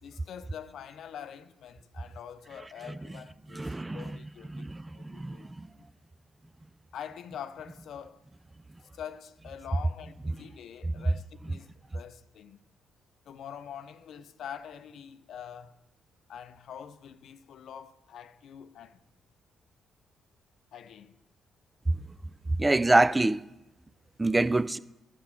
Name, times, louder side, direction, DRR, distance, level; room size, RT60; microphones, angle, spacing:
voice 1, 0.0-5.5 5.7-5.9 6.9-8.2 8.9-12.6 13.3-15.7 16.3-19.0 20.7-21.2, left 8 dB, 70° left, 0.5 m, -45 dB
voice 2, 3.5-4.1 4.5-5.7 11.0-11.1 22.6-23.4 24.2-24.8, right 2 dB, 20° right, 0.4 m, -26 dB
11.5 x 6.8 x 5.8 m
supercardioid pair, 60°, 0 cm